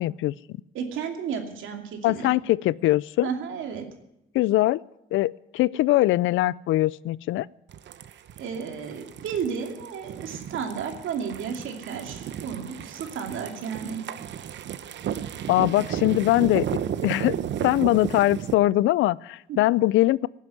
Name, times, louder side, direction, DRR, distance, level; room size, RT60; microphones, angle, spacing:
voice 1, 0.0-0.6 2.0-3.3 4.3-4.8 5.1-7.5 15.5-17.4 17.6-20.3, left 16 dB, 85° left, 22 dB, 0.4 m, -22 dB
voice 2, 0.7-2.3 3.2-3.9 8.4-14.0 19.5-19.6, right 6 dB, 80° right, 4 dB, 2.6 m, -33 dB
sound 1, 7.7-18.5, right 9 dB, 65° right, 0.9 m, -34 dB
16.5 x 7.6 x 9.5 m, 0.87 s
cardioid pair, 90°, 20 cm